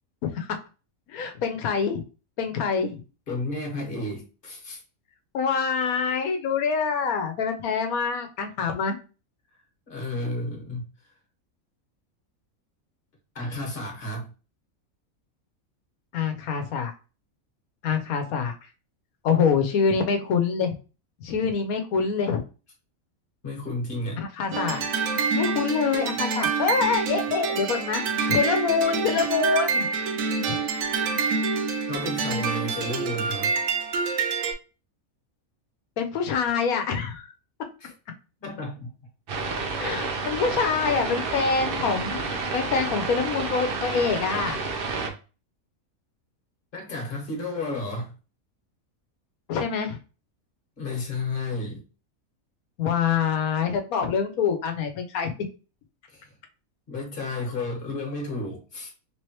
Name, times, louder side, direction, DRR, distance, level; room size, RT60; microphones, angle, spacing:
voice 1, 1.1-2.0 2.4-3.0 5.3-9.0 16.1-16.9 17.8-18.5 19.2-20.7 21.2-22.4 24.2-24.9 25.3-29.9 30.5-30.6 36.0-37.2 39.8-42.2 42.5-44.6 49.5-50.0 52.8-55.3, left 6 dB, 85° left, 6 dB, 1.2 m, -25 dB
voice 2, 3.3-4.8 8.6-8.7 9.9-11.1 13.3-14.3 23.4-24.2 31.9-33.5 37.8-37.9 38.4-38.9 46.7-48.1 50.8-51.8 56.1-56.3 56.9-58.9, left 2 dB, 40° left, 1 dB, 1.4 m, -32 dB
sound 1, 24.5-34.5, right 5 dB, 75° right, 1.1 m, -27 dB
sound 2, 39.3-45.1, right 4 dB, 50° right, 0.8 m, -30 dB
3.7 x 3.2 x 2.9 m, 0.33 s
omnidirectional pair, 1.5 m